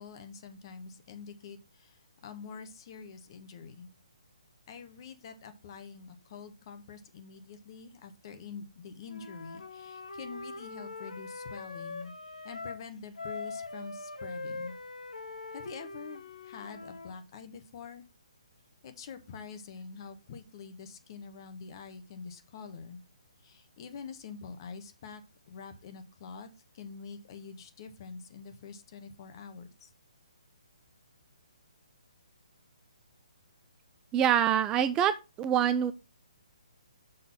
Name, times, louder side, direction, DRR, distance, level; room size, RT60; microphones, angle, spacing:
voice 1, 0.0-3.9 4.7-12.1 12.4-14.7 15.5-18.1 18.8-23.0 23.4-25.2 25.5-29.9, left 5 dB, 40° left, 9 dB, 1.3 m, -46 dB
Wind instrument woodwind instrument, 9.1-12.8 13.2-17.2, left 3 dB, 90° left, 0.9 m, -42 dB
voice 2, 34.1-35.9, right 9 dB, 15° right, 12 dB, 0.4 m, -25 dB
6.7 x 3.9 x 5.6 m, 0.27 s
hypercardioid pair, 145°, 4 cm